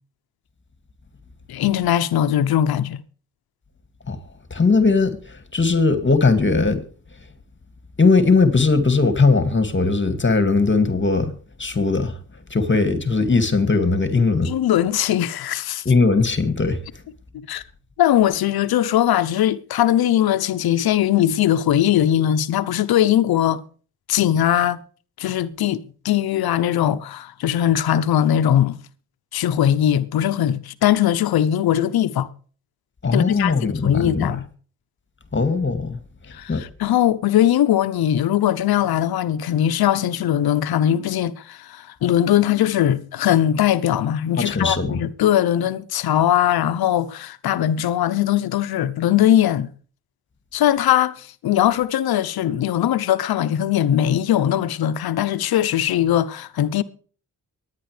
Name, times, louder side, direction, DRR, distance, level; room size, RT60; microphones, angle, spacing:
voice 1, 1.5-3.0 14.4-15.8 17.5-17.6 18.0-23.6 24.1-24.8 25.2-25.8 26.0-28.8 29.3-32.3 33.0-34.4 36.3-49.7 50.5-56.8, left 11 dB, 75° left, 0.9 m, -20 dB
voice 2, 4.5-6.8 8.0-11.3 11.6-12.1 12.5-14.5 15.9-16.8 33.0-34.4 35.3-36.0 36.5-36.6 44.4-45.0, left 4 dB, 30° left, 2.3 m, -19 dB
23.5 x 10.0 x 3.3 m
supercardioid pair, 50°, 37 cm